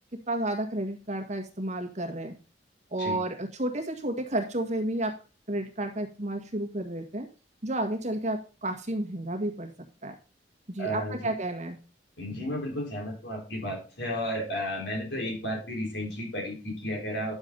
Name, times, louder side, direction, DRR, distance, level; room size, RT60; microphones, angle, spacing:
voice 1, 0.1-2.3 2.9-5.1 5.5-7.3 7.6-9.7 10.0-10.1 10.7-11.8, right 1 dB, 40° right, 4 dB, 1.7 m, -31 dB
voice 2, 10.8-11.3 12.2-17.3, equal, 75° left, -1 dB, 4.6 m, -33 dB
10.5 x 7.2 x 4.0 m, 0.34 s
head